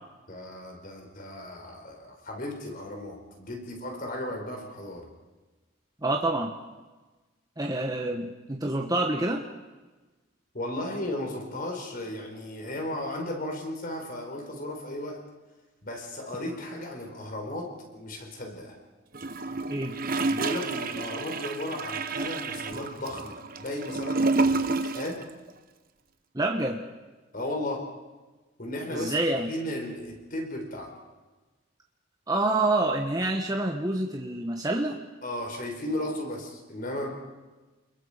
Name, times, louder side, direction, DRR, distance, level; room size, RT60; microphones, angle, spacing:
voice 1, 0.3-5.1 10.5-15.2 15.8-18.8 20.3-25.3 27.3-27.9 28.6-29.2 29.5-30.9 35.2-37.1, left 1 dB, 45° left, 3 dB, 4.7 m, -35 dB
voice 2, 6.0-6.5 7.6-9.4 19.7-19.9 26.3-26.9 28.9-29.5 32.3-35.0, right 2 dB, 20° right, 1 dB, 1.4 m, -27 dB
Gurgling / Toilet flush, 19.1-25.2 25.5-25.6, right 3 dB, 45° right, 1.1 m, -29 dB
30.0 x 21.5 x 5.2 m, 1.2 s
head